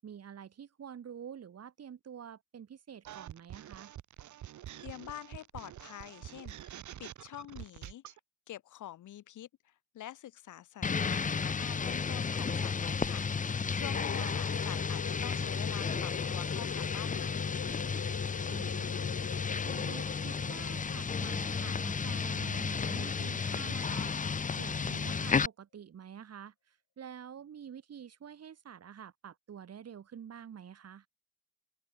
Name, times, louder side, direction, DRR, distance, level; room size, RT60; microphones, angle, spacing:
voice 1, 0.0-3.9 14.2-14.4 18.5-19.1 19.6-24.1 24.5-31.1, right 8 dB, 55° right, 7.4 m, -48 dB
sound 1, 3.0-8.2, right 12 dB, 70° right, 3.4 m, -47 dB
voice 2, 4.8-8.0 8.5-17.5, left 12 dB, 75° left, 5.8 m, -47 dB
sound 2, 10.8-25.5, left 5 dB, 25° left, 0.9 m, -33 dB
sound 3, 13.8-23.1, left 8 dB, 55° left, 2.7 m, -44 dB
open air
cardioid pair, 90°, 30 cm